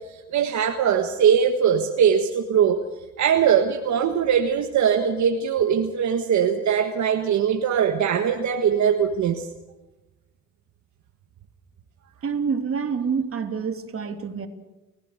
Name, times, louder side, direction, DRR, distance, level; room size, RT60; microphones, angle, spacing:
voice 1, 0.1-2.8 3.2-9.5, right 8 dB, 70° right, 4 dB, 1.6 m, -21 dB
voice 2, 12.2-14.5, right 6 dB, 45° right, 5 dB, 3.0 m, -27 dB
30.0 x 15.5 x 6.7 m, 1.1 s
cardioid pair, 90°, 30 cm